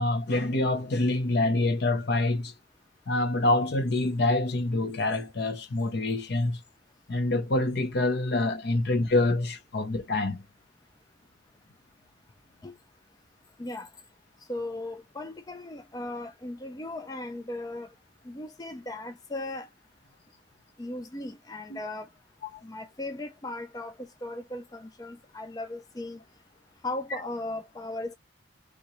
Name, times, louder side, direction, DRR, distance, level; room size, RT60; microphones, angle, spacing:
voice 1, 0.0-2.5 3.1-6.6 7.1-10.4 21.7-21.8 22.5-22.6, left 2 dB, 55° left, 0.6 m, -26 dB
voice 2, 14.5-17.9 18.3-19.7 20.8-22.1 22.6-23.9 24.2-26.2 26.8-28.1, left 2 dB, 20° left, 0.4 m, -37 dB
3.4 x 2.8 x 3.0 m
head